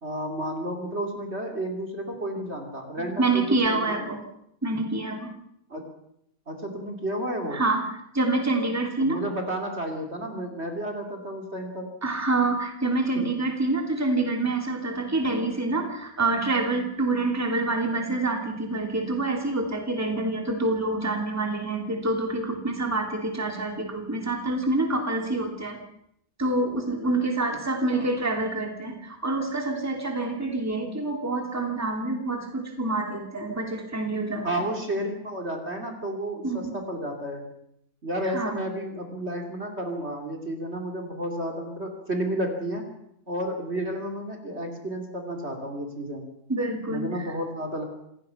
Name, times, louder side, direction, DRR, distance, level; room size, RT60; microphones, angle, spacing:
voice 1, 0.0-4.0 5.7-5.8 6.5-7.6 9.0-11.9 13.1-13.3 13.7-13.9 27.5-27.6 27.9-28.1 34.4-37.4 38.0-42.8 43.3-46.3 46.9-47.8, right 1 dB, 35° right, 2 dB, 2.9 m, -32 dB
voice 2, 3.0-4.2 4.6-5.3 7.5-7.8 8.1-9.2 12.0-25.8 26.4-34.6 36.4-36.7 38.2-38.6 46.5-47.3, right 2 dB, 10° right, 3 dB, 2.9 m, -27 dB
27.5 x 17.0 x 5.7 m, 0.75 s
omnidirectional pair, 2.0 m